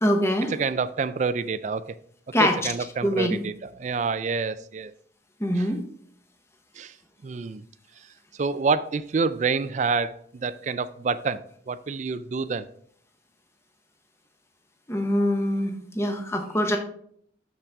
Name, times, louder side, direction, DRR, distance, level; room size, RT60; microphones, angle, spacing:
voice 1, 0.0-0.5 2.3-2.7 3.0-3.4 5.4-5.8 14.9-16.8, left 1 dB, 15° left, 0.8 m, -24 dB
voice 2, 0.6-1.9 2.6-4.9 5.6-5.7 6.8-6.9 7.2-7.6 8.4-12.7, right 4 dB, 40° right, 0.3 m, -27 dB
6.7 x 5.7 x 3.5 m
head